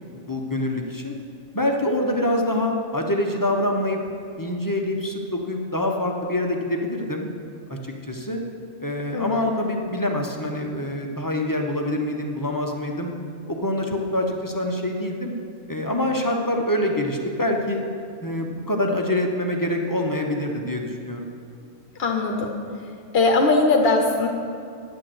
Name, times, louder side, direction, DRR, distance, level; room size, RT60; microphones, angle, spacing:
voice 1, 0.1-1.2 1.5-4.0 4.4-7.3 7.7-8.4 8.8-13.1 13.5-15.3 15.7-17.8 18.2-21.3, left 1 dB, 20° left, 2 dB, 0.7 m, -25 dB
voice 2, 9.1-9.5 22.0-22.5 23.1-24.3, left 3 dB, 55° left, 2 dB, 1.0 m, -20 dB
9.9 x 6.5 x 7.8 m, 2.4 s
omnidirectional pair, 1.4 m